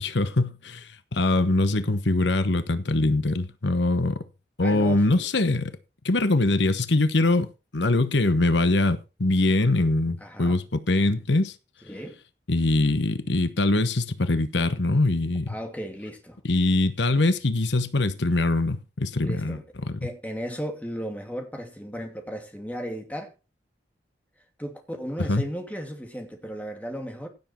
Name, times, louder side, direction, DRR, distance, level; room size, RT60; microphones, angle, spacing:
voice 1, 0.0-4.2 4.6-5.8 6.0-11.5 12.5-15.5 16.4-20.1 25.3-25.5, left 2 dB, 85° left, 1.1 m, -23 dB
voice 2, 4.6-5.3 10.2-10.6 11.8-12.2 15.5-16.4 19.2-19.6 20.0-23.3 24.6-27.3, equal, 10° left, 2.6 m, -35 dB
16.5 x 7.3 x 4.4 m
head